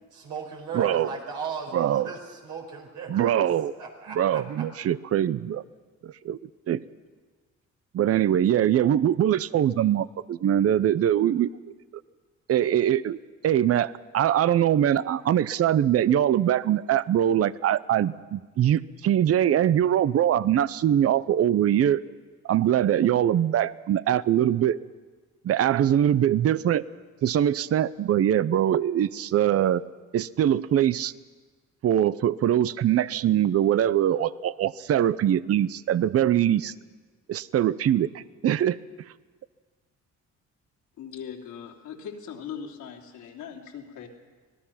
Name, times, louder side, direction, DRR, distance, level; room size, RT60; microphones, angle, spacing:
voice 1, 0.1-3.5 3.7-4.6, right 5 dB, 80° right, 1 dB, 4.9 m, -37 dB
voice 2, 0.7-1.1 1.7-2.1 3.1-3.7 4.1-5.6 6.0-6.4 6.7-6.8 7.9-11.5 12.5-13.2 13.4-22.0 22.4-24.8 25.4-26.8 27.2-29.8 30.1-31.1 31.8-36.7 37.3-38.8, right 10 dB, 50° right, 18 dB, 0.6 m, -22 dB
voice 3, 41.0-44.1, left 7 dB, 85° left, 1 dB, 3.0 m, -40 dB
25.5 x 18.0 x 5.8 m, 1.4 s
cardioid pair, 90°, 30 cm